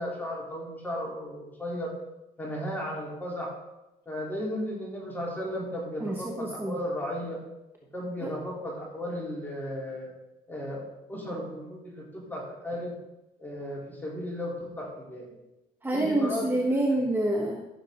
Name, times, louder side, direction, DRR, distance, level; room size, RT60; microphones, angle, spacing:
voice 1, 0.0-1.9 2.4-3.5 4.1-7.4 7.9-10.1 10.5-13.0 13.4-15.3 15.9-16.4, equal, 10° left, -4 dB, 4.1 m, -35 dB
voice 2, 6.0-6.8 8.2-8.3 15.8-17.7, right 1 dB, 10° right, 1 dB, 1.1 m, -27 dB
14.5 x 6.6 x 4.1 m, 0.95 s
cardioid pair, 110°, 17 cm